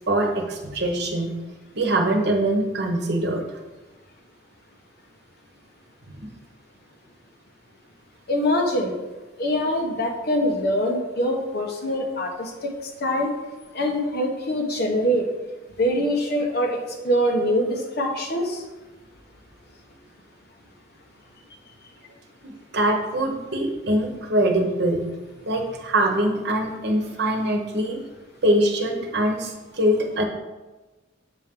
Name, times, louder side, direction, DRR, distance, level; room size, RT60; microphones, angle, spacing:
voice 1, 0.1-1.3 1.7-3.6 6.1-6.3 22.4-25.0 25.5-28.0 28.4-30.2, right 1 dB, 65° right, 2 dB, 1.0 m, -23 dB
voice 2, 8.3-8.9 9.4-12.5 13.0-13.3 13.7-15.2 15.8-16.8 17.0-18.6, equal, 60° left, 2 dB, 1.1 m, -23 dB
7.3 x 4.6 x 3.7 m, 1.2 s
head